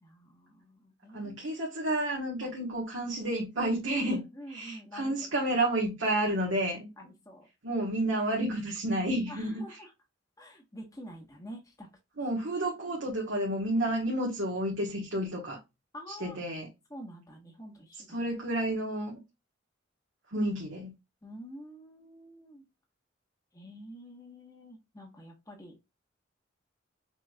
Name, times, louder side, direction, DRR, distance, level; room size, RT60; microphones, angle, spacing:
voice 1, 0.0-1.6 2.4-2.5 4.0-5.3 6.7-7.5 9.3-9.9 10.4-11.9 15.9-16.4 16.9-18.3 20.3-20.5 21.2-22.6 23.5-25.7, equal, 20° left, 1.2 m, -47 dB
voice 2, 1.1-6.9 7.6-9.6 12.2-15.6 16.1-16.7 18.1-19.2 20.3-20.9, right 1 dB, 85° right, 1.3 m, -30 dB
6.0 x 3.1 x 2.3 m
head